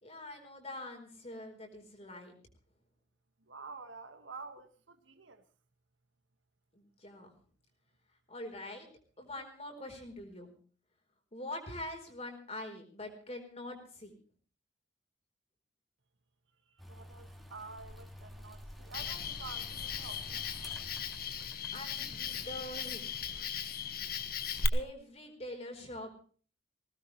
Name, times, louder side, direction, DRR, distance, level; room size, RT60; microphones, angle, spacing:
voice 1, 0.0-2.3 6.7-7.3 8.3-8.9 9.2-10.5 11.3-14.1 21.7-23.3 24.7-26.1, left 1 dB, 35° left, 4.2 m, -44 dB
voice 2, 3.5-5.4 16.7-20.7, right 4 dB, 80° right, 1.8 m, -49 dB
sound 1, 16.8-22.2, equal, ahead, 2.7 m, -50 dB
Cricket, 18.9-24.7, left 6 dB, 50° left, 1.3 m, -38 dB
20.0 x 17.5 x 3.2 m
head